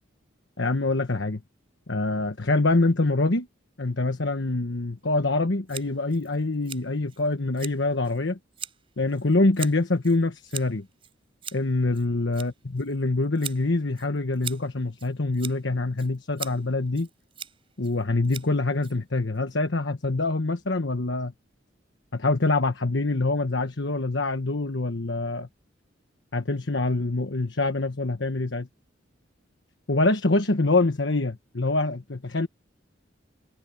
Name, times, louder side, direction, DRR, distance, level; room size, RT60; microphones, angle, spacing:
voice 1, 0.6-1.4 1.9-3.5 3.8-8.4 9.0-10.8 11.5-17.1 17.8-21.3 22.1-25.5 26.3-28.7 29.9-32.5, left 2 dB, 70° left, 1.2 m, -25 dB
Scissors, 5.7-19.4, right 8 dB, 30° right, 3.8 m, -43 dB
head